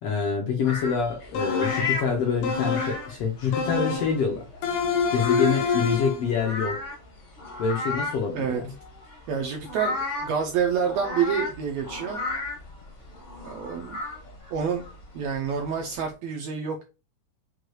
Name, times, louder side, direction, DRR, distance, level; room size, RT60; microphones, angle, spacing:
voice 1, 0.0-4.5 5.1-6.8 7.6-8.7, left 6 dB, 75° left, 1.4 m, -26 dB
sound 1, 0.6-16.1, left 3 dB, 50° left, 0.8 m, -35 dB
sound 2, 1.3-2.0 2.4-3.1 3.5-4.2 4.6-6.3, left 5 dB, 90° left, 2.6 m, -26 dB
voice 2, 9.3-12.2 13.4-14.0 14.5-14.8 15.1-16.8, right 7 dB, 80° right, 1.5 m, -28 dB
6.3 x 2.3 x 3.0 m
omnidirectional pair, 3.6 m